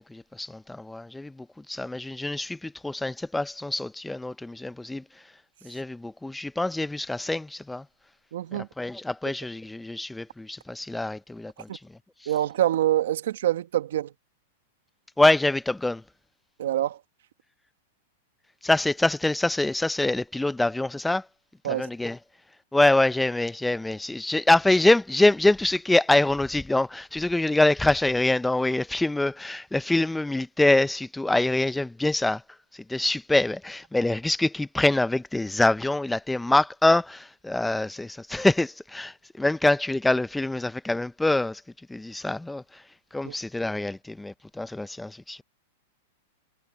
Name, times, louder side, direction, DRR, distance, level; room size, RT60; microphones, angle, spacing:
voice 1, 0.0-5.0 5.6-7.9 8.5-12.3 15.2-16.0 18.6-21.3 21.6-22.2 22.7-32.4 32.7-41.6 41.9-42.8 43.1-45.4, left 2 dB, 5° left, 0.4 m, -25 dB
voice 2, 8.3-8.7 11.7-11.8 12.3-14.1 16.6-17.0 21.6-21.8 43.2-43.3, right 12 dB, 75° right, 1.3 m, -25 dB
supercardioid pair, 165°, 0 cm